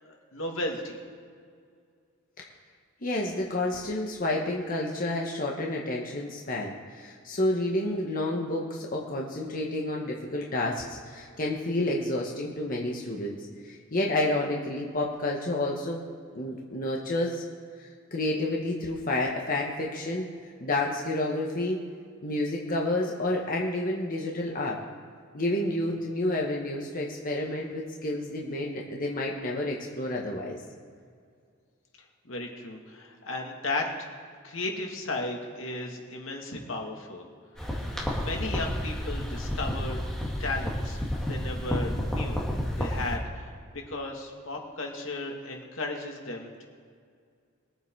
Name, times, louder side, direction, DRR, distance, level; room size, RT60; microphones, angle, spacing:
voice 1, 0.0-1.0 32.2-33.9 34.4-37.2 38.2-40.0 40.4-42.5 42.8-43.5 43.9-46.7, left 2 dB, 80° left, 1 dB, 2.3 m, -35 dB
voice 2, 3.0-13.4 13.6-16.0 16.3-17.4 17.8-20.3 20.6-21.8 22.2-24.8 25.3-30.6, left 1 dB, 45° left, -1 dB, 1.4 m, -30 dB
sound 1, 37.6-43.2, equal, 5° left, 2.4 m, -31 dB
22.0 x 8.0 x 4.8 m, 2.2 s
head